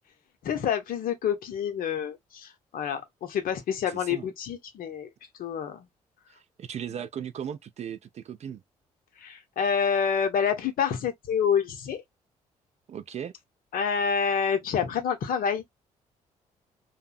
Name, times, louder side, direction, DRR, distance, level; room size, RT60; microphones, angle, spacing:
voice 1, 0.4-5.1 5.4-5.9 9.2-12.0 13.7-15.6, left 7 dB, 55° left, 0.7 m, -28 dB
voice 2, 3.9-4.3 6.3-8.6 12.9-13.3, right 8 dB, 40° right, 0.4 m, -37 dB
2.6 x 2.0 x 2.4 m
figure-of-eight pair, 45°, 18 cm